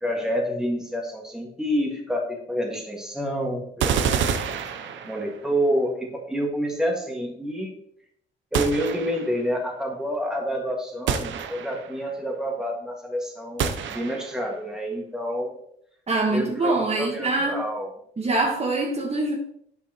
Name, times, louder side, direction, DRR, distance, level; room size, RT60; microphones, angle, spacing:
voice 1, 0.0-4.3 5.1-7.7 8.5-15.6 16.3-17.9, equal, 5° right, 1.8 m, -28 dB
sound 1, 3.8-5.4 8.5-9.4 11.1-12.0 13.6-14.5, right 7 dB, 70° right, 0.6 m, -27 dB
voice 2, 16.1-17.6 18.2-19.4, right 2 dB, 30° right, 1.4 m, -24 dB
8.3 x 5.5 x 2.9 m
cardioid pair, 90°, 20 cm